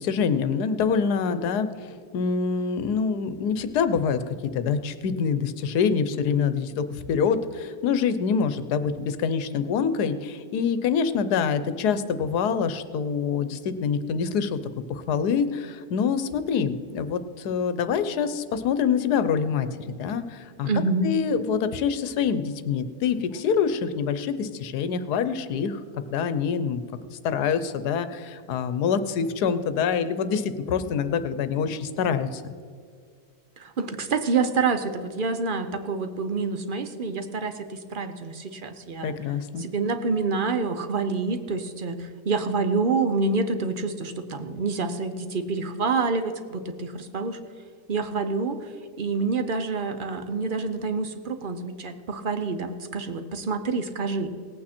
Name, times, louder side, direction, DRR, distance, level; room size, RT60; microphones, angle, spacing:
voice 1, 0.0-1.7 2.1-4.2 4.5-14.6 14.9-19.7 20.0-20.7 21.0-25.8 26.1-26.8 27.2-32.5 39.0-39.7, left 6 dB, 85° left, 12 dB, 1.3 m, -25 dB
voice 2, 20.6-21.1 33.6-39.1 39.6-47.4 47.9-48.7 49.0-54.3, right 4 dB, 45° right, 9 dB, 0.7 m, -27 dB
18.5 x 8.7 x 4.3 m, 2.2 s
omnidirectional pair, 1.7 m